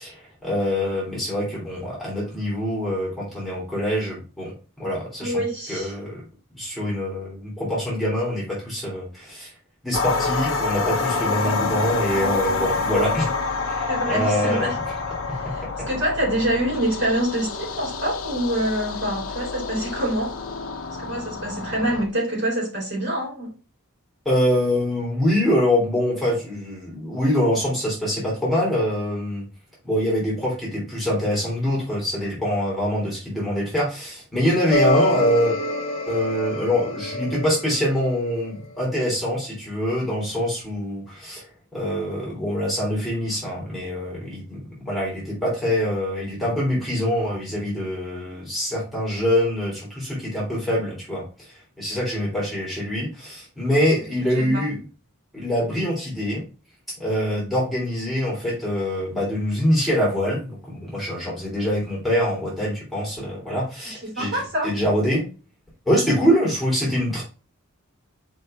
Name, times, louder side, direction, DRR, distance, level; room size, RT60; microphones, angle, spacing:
voice 1, 0.0-5.4 5.7-6.2 6.5-9.5 9.8-13.3 13.7-14.7 15.3-15.4 24.3-29.4 29.8-35.6 36.1-41.5 41.7-54.8 55.3-56.4 57.0-65.2 65.9-67.2, equal, ahead, -6 dB, 3.5 m, -24 dB
voice 2, 5.2-5.9 13.9-14.7 15.3-20.3 21.0-23.5 54.3-54.6 64.0-64.7, right 1 dB, 50° right, -3 dB, 4.4 m, -26 dB
sound 1, 9.9-22.1, left 4 dB, 70° left, 1.0 m, -27 dB
sound 2, 34.7-38.6, left 1 dB, 25° left, 1.2 m, -25 dB
5.4 x 5.2 x 4.4 m, 0.34 s
head